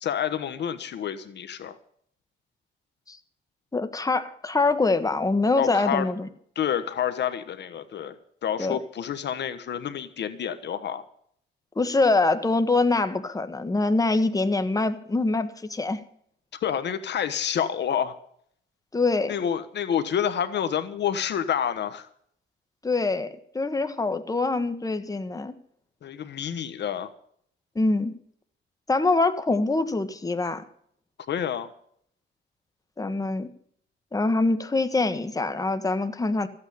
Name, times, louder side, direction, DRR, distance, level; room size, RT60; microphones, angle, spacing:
voice 1, 0.0-1.8 5.6-6.1 6.5-8.2 8.4-11.0 16.6-18.2 19.3-22.1 26.0-27.1 31.3-31.7, left 8 dB, 60° left, 11 dB, 1.2 m, -28 dB
voice 2, 3.7-6.3 8.6-8.8 11.7-16.0 18.9-19.3 22.8-25.5 27.7-28.2 28.9-30.6 33.0-33.5 34.1-36.5, left 3 dB, 15° left, 9 dB, 1.5 m, -24 dB
14.5 x 8.9 x 8.5 m, 0.65 s
cardioid pair, 90°, 20 cm